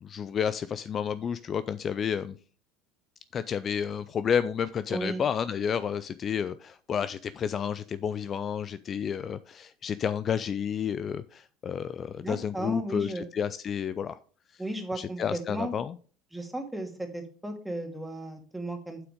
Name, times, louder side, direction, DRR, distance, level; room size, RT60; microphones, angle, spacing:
voice 1, 0.0-2.4 3.3-14.2 14.5-14.6 15.0-15.9, left 7 dB, 40° left, 14 dB, 0.4 m, -31 dB
voice 2, 4.9-5.2 12.2-13.2 14.6-15.8 16.3-19.0, right 1 dB, 5° right, 4 dB, 2.3 m, -35 dB
7.9 x 6.1 x 5.1 m, 0.41 s
hypercardioid pair, 70°, 0 cm